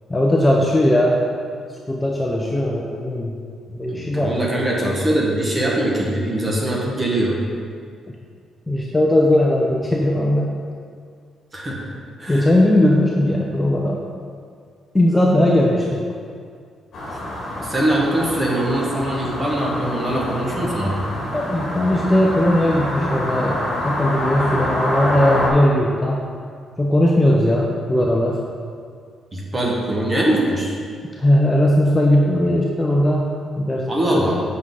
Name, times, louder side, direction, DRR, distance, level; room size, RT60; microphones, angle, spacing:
voice 1, 0.1-1.2 1.9-3.3 3.7-4.3 8.7-10.6 12.3-14.0 14.9-16.0 21.3-26.2 26.8-28.4 31.2-33.9 34.1-34.2, left 1 dB, 10° left, -2 dB, 0.5 m, -18 dB
voice 2, 3.9-7.4 11.5-11.8 12.2-12.5 17.6-21.0 29.3-30.8 33.9-34.4, right 1 dB, 20° right, -3 dB, 1.2 m, -22 dB
sound 1, 16.9-25.5, left 1 dB, 55° left, 1.8 m, -26 dB
7.7 x 6.1 x 3.8 m, 2.1 s
cardioid pair, 160°, 0 cm